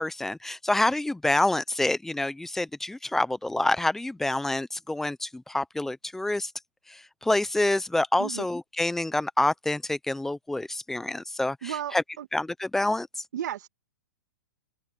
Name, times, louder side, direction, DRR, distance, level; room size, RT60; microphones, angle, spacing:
voice 1, 0.0-6.5 7.2-12.0 12.3-13.1, left 2 dB, 5° left, 0.7 m, -27 dB
voice 2, 11.6-12.3 13.3-13.7, right 10 dB, 65° right, 2.0 m, -34 dB
open air
hypercardioid pair, 150°, 10 cm